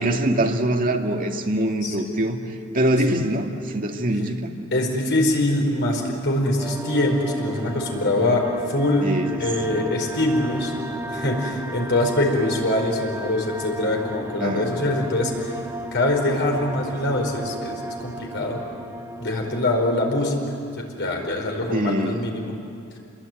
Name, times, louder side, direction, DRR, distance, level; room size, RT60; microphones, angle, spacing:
voice 1, 0.0-2.4 2.7-4.5 9.0-9.4 9.7-9.9 14.4-14.8 21.7-22.3, right 1 dB, 40° right, 2 dB, 2.0 m, -23 dB
voice 2, 4.7-8.4 8.7-9.1 9.4-10.7 11.1-15.6 15.9-17.7 18.0-18.6 19.2-20.4 20.9-22.6, left 1 dB, 60° left, 1 dB, 4.9 m, -23 dB
sound 1, 6.6-20.6, equal, 10° right, 1.5 m, -34 dB
27.0 x 22.0 x 9.3 m, 2.4 s
head